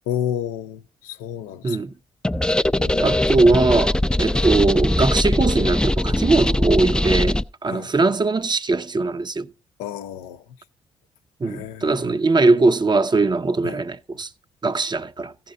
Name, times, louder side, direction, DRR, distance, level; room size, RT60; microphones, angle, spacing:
voice 1, 0.1-1.8 2.8-3.4 4.3-4.5 7.7-7.9 9.8-10.4 11.4-12.1 13.6-13.8, left 9 dB, 85° left, 0.5 m, -31 dB
sound 1, 2.2-7.4, left 1 dB, 5° left, 0.4 m, -21 dB
voice 2, 3.0-9.5 11.4-14.3 14.6-15.3, right 3 dB, 30° right, 0.7 m, -20 dB
15.0 x 5.9 x 3.8 m
hypercardioid pair, 40°, 14 cm